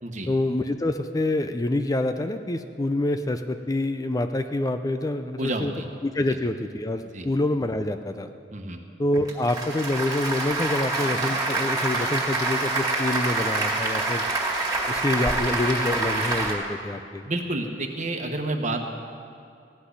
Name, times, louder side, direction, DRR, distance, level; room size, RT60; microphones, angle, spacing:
voice 1, 0.3-5.7 6.0-8.3 9.0-14.2 14.9-17.2, left 1 dB, 20° left, 8 dB, 0.4 m, -26 dB
voice 2, 5.4-5.9 7.1-7.3 8.5-8.8 17.2-18.9, right 2 dB, 45° right, 4 dB, 1.2 m, -29 dB
Applause, 9.1-16.5, right 2 dB, 20° right, 2.1 m, -26 dB
15.5 x 6.1 x 9.8 m, 2.5 s
head